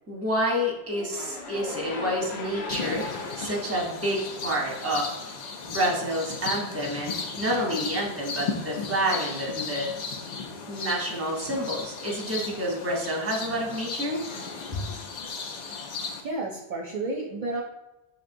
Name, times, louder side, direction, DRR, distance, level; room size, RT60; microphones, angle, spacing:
voice 1, 0.1-5.3 5.6-9.9 10.7-14.2 14.7-14.8, equal, 15° right, -1 dB, 0.7 m, -29 dB
sound 1, 0.9-5.1, left 3 dB, 90° left, 0.9 m, -38 dB
sound 2, 2.7-16.2, left 4 dB, 55° left, 0.5 m, -35 dB
voice 2, 16.2-17.6, right 2 dB, 55° right, -2 dB, 0.6 m, -31 dB
6.2 x 2.8 x 2.5 m, 0.96 s
omnidirectional pair, 1.1 m